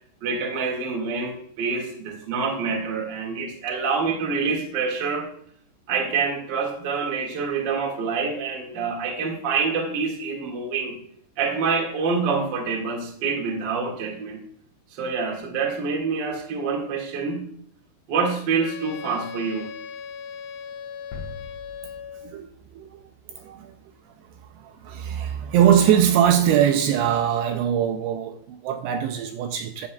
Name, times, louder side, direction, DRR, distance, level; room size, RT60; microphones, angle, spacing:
voice 1, 0.2-5.3 5.9-11.0 11.4-14.4 14.9-17.5 18.1-19.7, right 5 dB, 50° right, 1.3 m, -26 dB
Wind instrument woodwind instrument, 18.6-22.4, left 7 dB, 90° left, 3.2 m, -38 dB
sound 1, 21.1-23.0 23.4-23.5, left 3 dB, 75° left, 3.5 m, -42 dB
voice 2, 23.3-23.7 24.6-29.9, right 9 dB, 80° right, 2.5 m, -22 dB
12.5 x 8.4 x 2.3 m
omnidirectional pair, 5.1 m